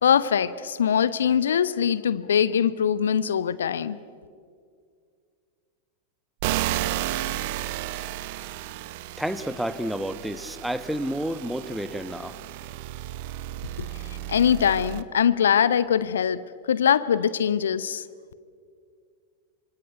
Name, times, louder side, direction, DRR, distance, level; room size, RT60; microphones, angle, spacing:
voice 1, 0.0-4.0 13.8-13.9 14.3-16.4 16.7-18.0, left 8 dB, 65° left, 17 dB, 0.8 m, -22 dB
sound 1, 6.4-15.0, right 14 dB, 50° right, 1.0 m, -33 dB
voice 2, 9.2-12.4, equal, ahead, 14 dB, 1.2 m, -30 dB
26.0 x 26.0 x 8.2 m, 2.1 s
figure-of-eight pair, 90°, 0 cm